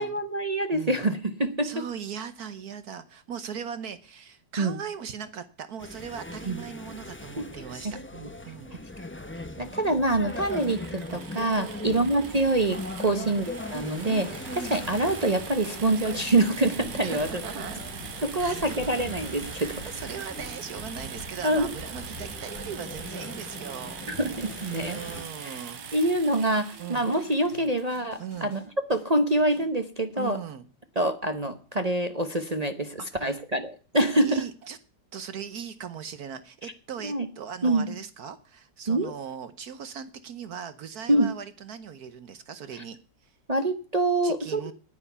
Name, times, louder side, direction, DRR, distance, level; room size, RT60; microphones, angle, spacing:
voice 1, 0.0-1.8 4.6-4.8 6.5-6.6 7.4-7.5 7.8-7.9 8.2-8.3 9.6-14.3 14.6-17.3 18.2-19.7 21.4-21.7 24.1-25.0 25.4-25.6 25.9-28.6 28.9-30.4 31.0-34.4 37.0-37.3 37.6-37.9 38.9-39.1 41.1-41.3 43.5-44.7, right 2 dB, 35° right, 7 dB, 0.7 m, -25 dB
voice 2, 0.7-1.0 1.6-7.9 8.4-8.7 11.6-12.0 13.1-13.4 17.0-17.8 18.4-18.6 19.6-24.0 24.8-26.1 26.8-27.1 28.2-28.5 30.2-30.7 33.0-33.4 34.2-34.8 35.1-43.0 43.2-43.3 44.2-44.7, right 7 dB, 60° right, 12 dB, 1.3 m, -39 dB
sound 1, 5.8-25.2, left 1 dB, 15° left, 0.4 m, -40 dB
sound 2, 10.3-28.0, right 6 dB, 80° right, 2.0 m, -42 dB
sound 3, 16.2-29.7, right 1 dB, 80° left, 3.8 m, -48 dB
9.8 x 9.6 x 6.7 m, 0.39 s
omnidirectional pair, 1.9 m